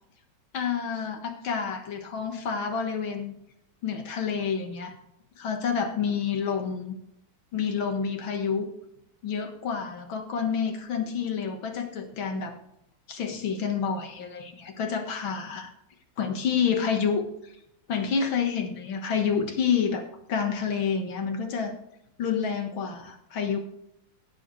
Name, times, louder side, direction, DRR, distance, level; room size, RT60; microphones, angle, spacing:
voice 1, 0.5-3.3 3.8-4.9 5.4-7.0 7.5-8.7 9.2-12.5 13.1-15.7 16.2-17.2 17.9-21.8 22.2-23.6, left 6 dB, 90° left, 5 dB, 2.3 m, -28 dB
17.0 x 7.3 x 3.2 m, 0.78 s
omnidirectional pair, 2.1 m